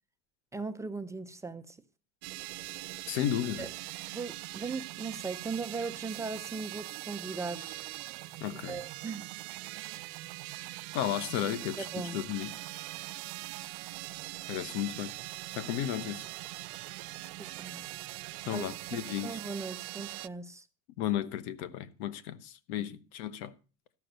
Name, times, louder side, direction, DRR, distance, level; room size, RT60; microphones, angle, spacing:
voice 1, 0.5-1.8 3.6-3.7 4.1-7.8 8.7-9.3 11.8-12.2 17.4-17.8 18.5-18.6 19.2-20.6 22.8-22.9, right 4 dB, 10° right, 0.5 m, -38 dB
sound 1, 2.2-20.3, right 21 dB, 80° right, 0.6 m, -42 dB
voice 2, 3.1-3.7 8.4-8.8 10.9-12.6 14.5-15.1 15.6-16.2 18.5-19.4 21.0-23.5, left 11 dB, 85° left, 1.1 m, -34 dB
13.5 x 5.9 x 6.6 m
cardioid pair, 150°, 31 cm